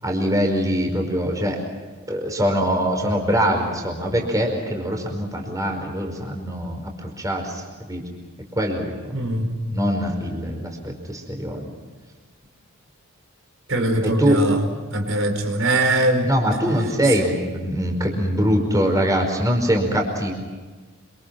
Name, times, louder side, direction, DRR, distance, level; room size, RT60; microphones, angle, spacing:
voice 1, 0.0-1.6 2.1-8.0 8.5-9.2 9.7-11.7 14.0-14.5 16.3-20.3, equal, 15° right, 2 dB, 5.1 m, -23 dB
voice 2, 9.1-9.5 13.7-14.6 14.9-16.3 17.1-17.2, right 1 dB, 60° right, 5 dB, 4.9 m, -21 dB
27.5 x 27.5 x 6.0 m, 1.3 s
head